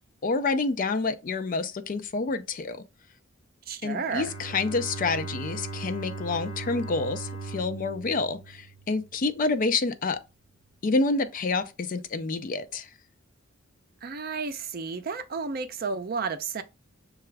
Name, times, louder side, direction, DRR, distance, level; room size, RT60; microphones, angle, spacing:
voice 1, 0.2-2.8 3.8-10.2 10.8-12.9, left 3 dB, 40° left, 0.4 m, -28 dB
voice 2, 3.7-4.3 14.0-16.6, right 5 dB, 45° right, 0.5 m, -32 dB
Bowed string instrument, 4.0-9.3, right 3 dB, 65° left, 1.2 m, -38 dB
6.7 x 2.3 x 3.3 m
head